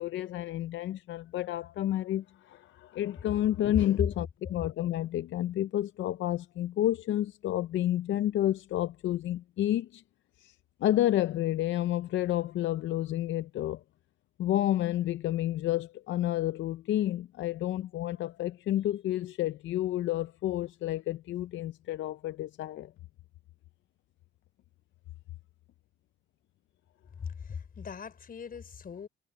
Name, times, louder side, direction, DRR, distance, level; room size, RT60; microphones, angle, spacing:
voice 1, 0.0-10.0 10.4-10.5 10.8-13.8 14.4-22.9, left 13 dB, 75° left, 0.6 m, -30 dB
voice 2, 27.2-29.1, left 6 dB, 45° left, 5.1 m, -41 dB
cardioid pair, 90°, 20 cm